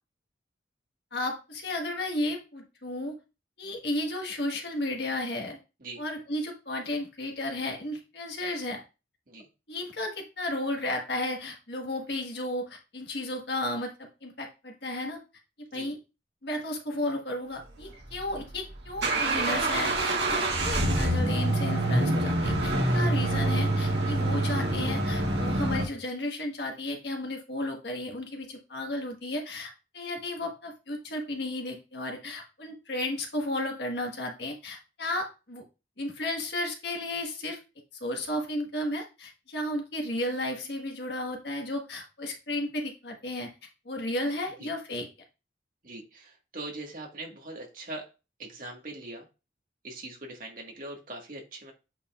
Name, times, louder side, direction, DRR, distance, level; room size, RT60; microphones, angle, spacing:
voice 1, 1.1-3.2 3.6-5.6 6.0-8.8 9.7-15.2 15.7-16.0 16.4-35.6 36.0-37.6 38.0-43.5 43.8-45.1, left 1 dB, 60° left, 2 dB, 1.5 m, -33 dB
sound 1, 18.0-25.9, right 1 dB, 65° right, 1.4 m, -26 dB
voice 2, 45.8-48.1 48.4-49.3 49.8-51.7, right 2 dB, 45° right, 1 dB, 1.6 m, -41 dB
8.2 x 4.9 x 2.4 m, 0.30 s
head